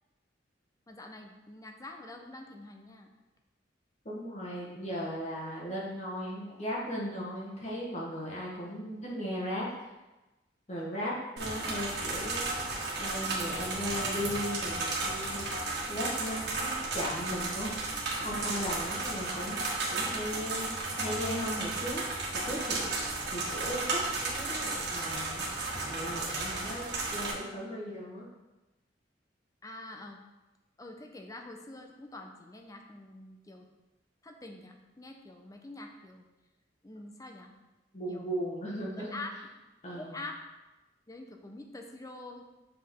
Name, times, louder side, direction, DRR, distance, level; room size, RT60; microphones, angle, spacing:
voice 1, 0.9-3.1 29.6-30.2 30.8-33.7 34.2-36.3 36.8-37.5 38.1-38.6 39.1-39.4 40.0-40.4 41.1-42.5, left 2 dB, 20° left, 3 dB, 0.7 m, -45 dB
voice 2, 4.0-9.7 10.7-12.5 13.0-15.4 15.9-19.6 19.9-22.0 22.4-22.9 23.3-25.5 25.9-28.3 37.9-39.2 39.8-40.2, equal, 40° left, -5 dB, 1.5 m, -37 dB
sound 1, 11.4-27.3, right 3 dB, 65° right, 1.5 m, -34 dB
7.2 x 5.0 x 3.7 m, 1.1 s
head